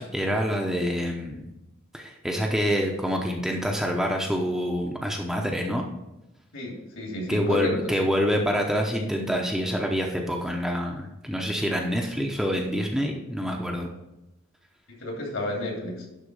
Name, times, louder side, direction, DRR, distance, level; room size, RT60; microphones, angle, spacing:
voice 1, 0.0-1.4 1.9-5.9 7.3-13.9, equal, ahead, 0 dB, 0.8 m, -26 dB
voice 2, 6.5-7.7 15.0-15.9, left 1 dB, 70° left, -1 dB, 3.0 m, -31 dB
11.5 x 3.9 x 5.4 m, 0.96 s
head